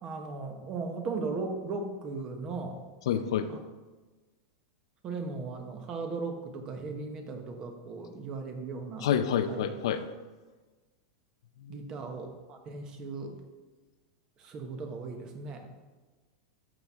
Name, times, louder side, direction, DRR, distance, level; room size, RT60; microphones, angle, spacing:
voice 1, 0.0-2.8 3.5-3.6 5.0-9.1 9.5-9.6 11.7-13.4 14.4-15.7, right 4 dB, 25° right, 5 dB, 1.1 m, -37 dB
voice 2, 3.1-3.5 9.0-10.0 11.7-11.8, left 8 dB, 70° left, 9 dB, 0.7 m, -28 dB
13.0 x 6.0 x 3.6 m, 1.3 s
supercardioid pair, 165°, 3 cm